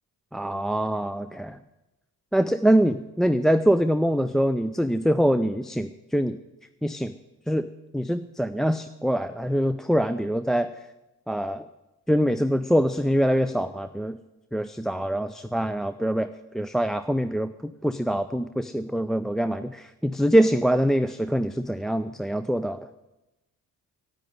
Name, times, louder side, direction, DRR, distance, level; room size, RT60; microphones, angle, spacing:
voice 1, 0.3-1.6 2.3-6.4 6.8-7.1 7.5-7.6 7.9-10.7 11.3-11.6 12.1-14.2 14.5-16.3 16.5-22.8, equal, ahead, 9 dB, 0.4 m, -24 dB
10.5 x 8.9 x 9.5 m, 0.99 s
hypercardioid pair, 45°, 47 cm